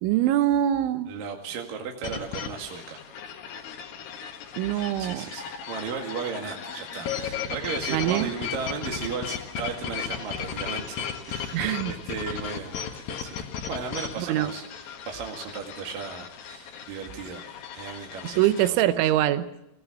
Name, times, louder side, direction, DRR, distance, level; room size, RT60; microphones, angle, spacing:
voice 1, 0.0-1.1 4.6-5.3 7.9-8.3 11.5-11.9 14.2-14.5 18.3-19.5, right 12 dB, 80° right, 12 dB, 3.3 m, -23 dB
voice 2, 1.1-3.0 5.0-13.3 13.7-17.4 17.7-18.4 18.8-19.0, right 6 dB, 55° right, 1 dB, 3.1 m, -36 dB
sound 1, 2.0-18.7, left 7 dB, 60° left, 2.7 m, -36 dB
22.5 x 17.0 x 7.3 m, 0.86 s
omnidirectional pair, 5.5 m